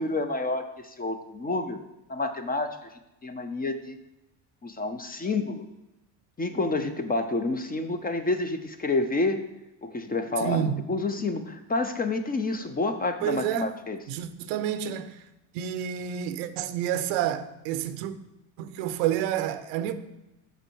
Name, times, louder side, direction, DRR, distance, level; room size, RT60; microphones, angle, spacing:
voice 1, 0.0-1.8 2.1-2.8 3.2-4.0 4.6-5.7 6.4-9.4 9.8-14.0, left 3 dB, 20° left, 0.6 m, -29 dB
voice 2, 10.4-10.8 13.2-13.8 14.1-15.2 15.5-18.1 18.6-19.9, right 10 dB, 85° right, 0.8 m, -29 dB
6.8 x 5.4 x 4.6 m
supercardioid pair, 90°, 48 cm